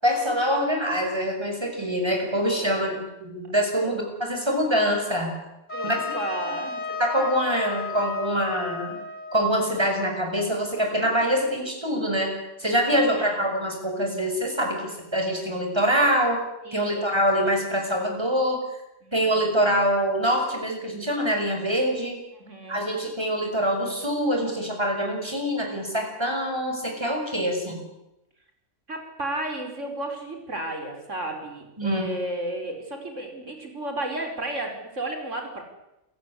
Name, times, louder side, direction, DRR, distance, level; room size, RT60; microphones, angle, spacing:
voice 1, 0.0-5.4 5.8-6.0 6.4-6.5 7.0-9.0 9.3-16.4 16.7-18.6 19.1-22.2 22.7-27.8 31.8-32.1, equal, 20° right, 3 dB, 6.2 m, -25 dB
voice 2, 2.5-3.0 3.8-4.0 5.7-6.8 12.8-13.5 16.6-17.2 19.0-19.4 22.4-22.9 28.9-35.6, right 1 dB, 85° right, 4 dB, 5.2 m, -33 dB
Trumpet, 5.7-10.5, left 5 dB, 35° left, 7.2 m, -34 dB
29.0 x 16.0 x 9.9 m, 0.91 s
omnidirectional pair, 1.2 m